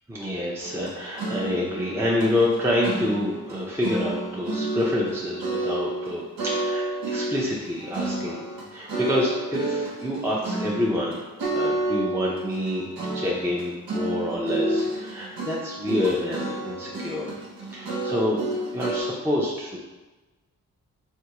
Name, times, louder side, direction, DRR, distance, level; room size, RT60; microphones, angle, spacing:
voice 1, 0.1-17.3 17.7-18.4 18.7-19.8, left 1 dB, 5° right, -4 dB, 0.5 m, -27 dB
sound 1, 0.6-3.6 3.8-6.1 6.4-19.0, right 2 dB, 85° right, 0.7 m, -30 dB
3.4 x 2.3 x 2.9 m, 1.2 s
cardioid pair, 45°, 34 cm